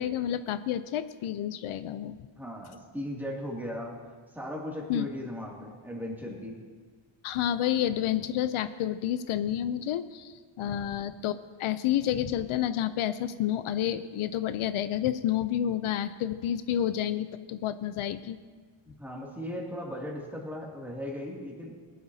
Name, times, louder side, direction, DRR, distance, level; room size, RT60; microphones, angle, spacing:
voice 1, 0.0-2.2 4.9-5.1 7.2-18.4, left 11 dB, 80° left, 13 dB, 0.6 m, -30 dB
voice 2, 2.4-3.9 4.3-6.6 10.6-10.9 18.9-21.7, left 1 dB, 5° right, -3 dB, 2.3 m, -37 dB
20.0 x 11.0 x 2.7 m, 1.5 s
wide cardioid pair, 145°, 49 cm